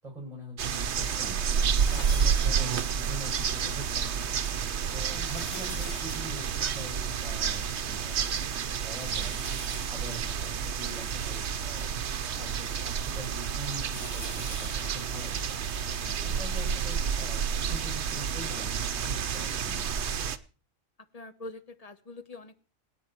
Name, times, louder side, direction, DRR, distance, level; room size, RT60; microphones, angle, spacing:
voice 1, 0.0-4.2 4.9-9.4 9.9-12.0 12.3-15.4 16.0-19.9, right 2 dB, 30° right, -2 dB, 7.1 m, -43 dB
sound 1, 0.6-20.4, right 7 dB, 60° right, 1.1 m, -30 dB
sound 2, 1.6-3.5 4.0-4.1 4.8-7.8 8.1-8.2 8.7-11.8 12.4-16.3 17.0-17.1 18.4-18.5, left 1 dB, 50° left, 3.1 m, -46 dB
voice 2, 21.1-22.6, left 2 dB, 30° left, 10 dB, 1.2 m, -44 dB
26.5 x 9.4 x 4.6 m, 0.39 s
omnidirectional pair, 1.3 m